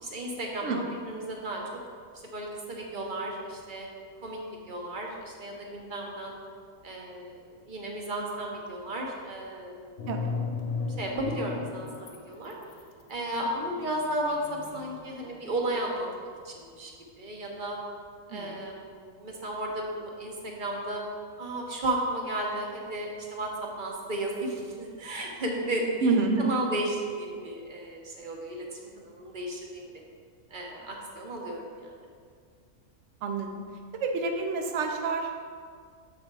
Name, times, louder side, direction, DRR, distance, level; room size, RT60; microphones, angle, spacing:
voice 1, 0.0-1.6 2.2-3.9 4.2-4.4 4.7-6.4 6.8-10.1 11.0-12.5 13.1-17.8 18.3-21.0 21.4-23.5 23.8-29.9 30.5-32.0, right 1 dB, 40° right, -1 dB, 1.0 m, -34 dB
sound 1, 10.0-12.2 12.4-15.9, left 4 dB, 70° left, 1.1 m, -36 dB
voice 2, 26.0-26.7 33.2-33.6 34.0-35.3, right 4 dB, 65° right, 4 dB, 1.0 m, -28 dB
7.4 x 4.1 x 4.6 m, 2.1 s
omnidirectional pair, 1.4 m